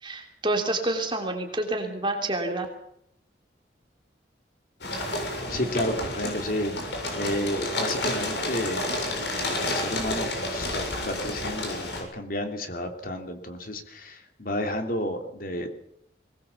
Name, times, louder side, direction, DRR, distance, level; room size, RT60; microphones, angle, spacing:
voice 1, 0.0-2.7, right 2 dB, 25° right, 3 dB, 2.9 m, -28 dB
sound 1, 4.8-12.0, left 1 dB, 70° left, 7.4 m, -30 dB
voice 2, 5.5-15.7, left 1 dB, 50° left, 5 dB, 3.1 m, -32 dB
22.5 x 19.5 x 7.1 m, 0.74 s
head